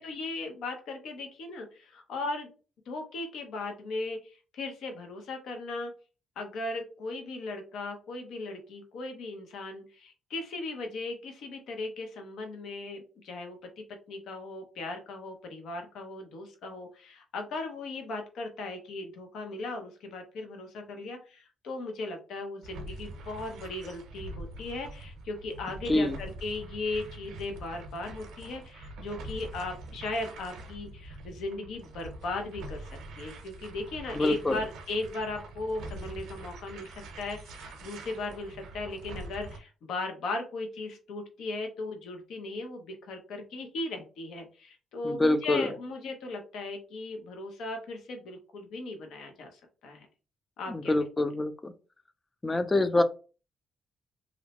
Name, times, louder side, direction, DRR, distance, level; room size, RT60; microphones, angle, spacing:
voice 1, 0.0-2.5 2.9-5.9 6.4-50.1 50.6-50.9, left 2 dB, 75° left, 4 dB, 0.7 m, -37 dB
sound 1, 22.6-39.6, right 2 dB, 80° right, 0.6 m, -44 dB
voice 2, 34.1-34.6 45.0-45.7 50.7-51.7 52.4-53.0, left 2 dB, 20° left, 11 dB, 0.4 m, -26 dB
2.6 x 2.1 x 2.9 m, 0.35 s
cardioid pair, 90°, 0 cm